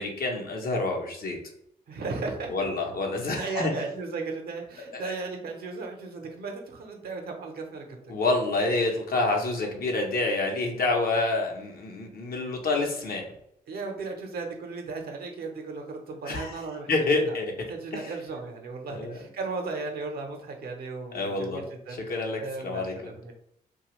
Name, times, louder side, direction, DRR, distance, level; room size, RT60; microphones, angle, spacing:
voice 1, 0.0-1.4 2.5-3.7 4.9-5.1 8.1-13.3 16.2-16.5 16.9-17.5 17.9-18.1 18.9-19.2 21.1-21.6 21.9-22.9, left 2 dB, 60° left, 2 dB, 0.8 m, -28 dB
voice 2, 1.9-2.7 3.4-8.1 13.7-17.3 17.7-22.0 22.4-23.3, right 3 dB, 70° right, 3 dB, 0.7 m, -36 dB
2.7 x 2.3 x 3.0 m, 0.74 s
supercardioid pair, 50°, 17 cm